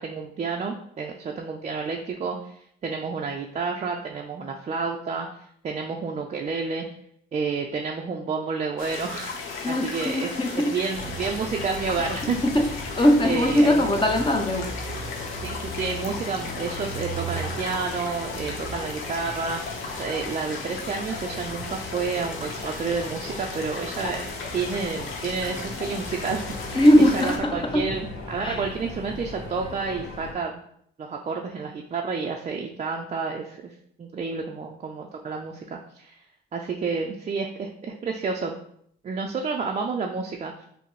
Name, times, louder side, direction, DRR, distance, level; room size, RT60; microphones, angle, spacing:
voice 1, 0.0-5.3 5.6-6.9 7.3-12.4 13.2-13.9 15.4-24.3 24.5-26.8 27.1-30.6 31.0-33.7 34.0-36.2 36.5-38.6 39.0-40.7, right 5 dB, 35° right, 1 dB, 0.4 m, -30 dB
sound 1, 8.8-27.4, left 4 dB, 85° left, 0.7 m, -36 dB
voice 2, 9.6-10.7 12.0-12.7 13.0-14.7 26.7-27.8 28.4-28.6, left 1 dB, 25° left, 3 dB, 0.7 m, -20 dB
sound 2, 10.9-30.3, left 1 dB, 65° left, 1.3 m, -38 dB
5.6 x 2.0 x 3.1 m, 0.68 s
cardioid pair, 90°, 20 cm